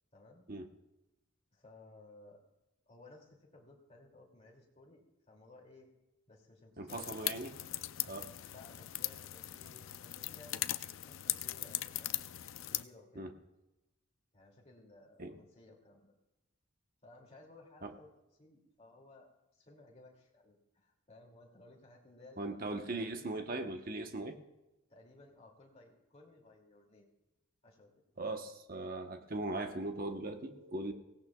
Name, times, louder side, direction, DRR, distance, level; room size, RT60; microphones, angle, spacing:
voice 1, 0.1-0.4 1.5-2.4 2.9-5.9 6.3-7.3 8.5-10.7 11.1-12.2 12.7-13.3 14.3-16.1 17.0-18.1 18.4-23.3 24.9-27.1 27.6-28.0, left 2 dB, 35° left, -1 dB, 2.6 m, -58 dB
voice 2, 6.8-7.5 8.0-8.3 13.1-13.3 15.2-15.4 17.8-17.9 22.4-24.4 28.2-30.9, right 2 dB, 45° right, 5 dB, 1.1 m, -39 dB
Sound of wood charcoal slow burning, 6.9-12.8, left 14 dB, 75° left, 0.5 m, -39 dB
23.0 x 17.5 x 2.4 m, 0.97 s
head